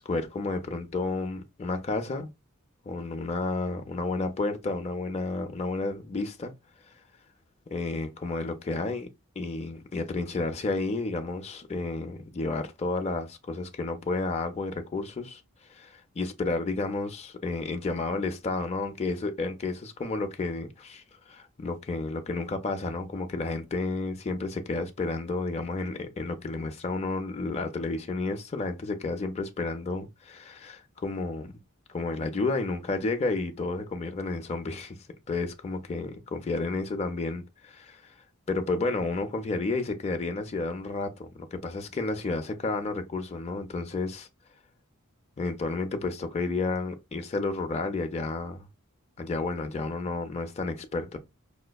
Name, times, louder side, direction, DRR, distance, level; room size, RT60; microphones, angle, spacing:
voice 1, 0.1-2.3 2.9-6.5 7.7-9.1 9.4-15.4 15.7-31.5 31.9-35.0 35.3-38.1 38.5-44.3 45.4-48.7 49.2-51.2, left 3 dB, 30° left, 0.4 m, -31 dB
4.8 x 2.1 x 2.2 m
head